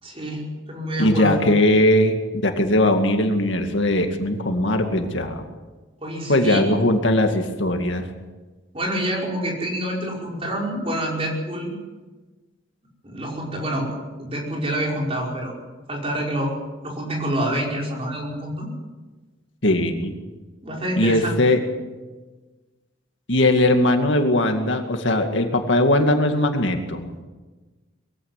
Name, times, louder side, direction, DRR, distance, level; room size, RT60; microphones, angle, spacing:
voice 1, 0.0-1.4 6.0-6.7 8.7-11.7 13.0-13.9 14.2-15.5 15.9-16.5 16.8-18.7 20.6-21.6, right 1 dB, 30° right, -1 dB, 5.4 m, -27 dB
voice 2, 1.0-5.4 6.3-8.1 19.6-20.1 21.0-21.6 23.3-27.1, left 1 dB, 65° left, 5 dB, 2.2 m, -20 dB
21.5 x 16.0 x 9.7 m, 1.3 s
head